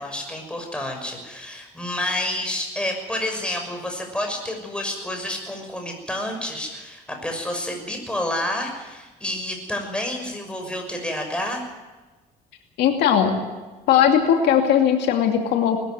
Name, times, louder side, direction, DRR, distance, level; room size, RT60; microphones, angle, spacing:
voice 1, 0.0-11.6, left 1 dB, 5° left, 2 dB, 6.1 m, -29 dB
voice 2, 12.8-13.4 13.9-15.8, left 9 dB, 80° left, 3 dB, 2.5 m, -18 dB
20.5 x 14.0 x 9.4 m, 1.2 s
cardioid pair, 110°, 17 cm